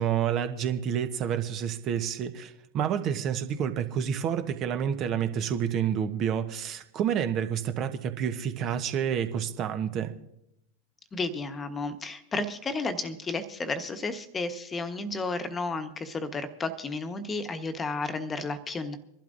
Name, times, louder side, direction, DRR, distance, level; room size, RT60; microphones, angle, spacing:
voice 1, 0.0-10.1, right 8 dB, 40° right, 8 dB, 1.2 m, -29 dB
voice 2, 11.1-19.0, left 3 dB, 20° left, 9 dB, 1.2 m, -32 dB
26.0 x 12.0 x 2.6 m, 0.82 s
hypercardioid pair, 95°, 0 cm